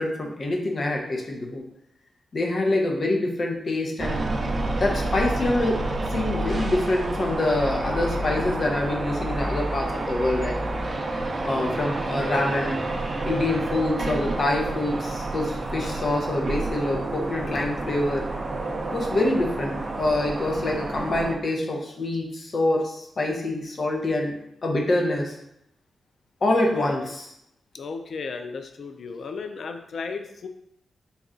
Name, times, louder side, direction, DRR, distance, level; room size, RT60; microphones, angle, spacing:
voice 1, 0.0-1.6 2.3-4.2 4.8-5.8 6.1-10.6 11.4-12.8 13.2-18.2 18.9-25.3 26.4-27.3, left 2 dB, 50° left, 1 dB, 0.8 m, -25 dB
sound 1, 4.0-21.4, right 2 dB, 40° right, 0.5 m, -29 dB
voice 2, 26.4-27.1 27.7-30.5, left 4 dB, 65° left, 6 dB, 0.4 m, -35 dB
4.1 x 2.3 x 3.7 m, 0.78 s
cardioid pair, 80°, 0 cm